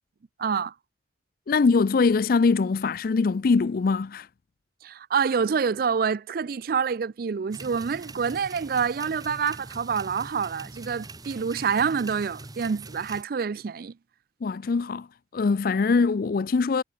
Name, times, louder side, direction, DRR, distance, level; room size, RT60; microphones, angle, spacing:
voice 1, 0.4-0.7 4.8-13.9, right 6 dB, 55° right, 0.4 m, -27 dB
voice 2, 1.5-4.3 14.4-15.1 15.3-16.8, left 4 dB, 55° left, 0.4 m, -22 dB
sound 1, 7.5-13.2, right 2 dB, 20° right, 1.8 m, -43 dB
head